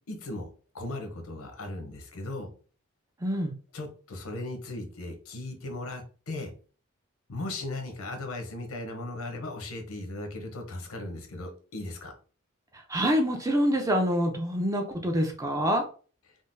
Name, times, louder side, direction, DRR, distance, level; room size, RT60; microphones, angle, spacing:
voice 1, 0.1-0.5 0.7-2.5 3.7-6.5 7.3-12.1, left 2 dB, 90° left, 4 dB, 0.7 m, -37 dB
voice 2, 3.2-3.5 12.9-15.8, equal, 15° right, 3 dB, 0.4 m, -26 dB
3.7 x 2.0 x 2.5 m, 0.40 s
head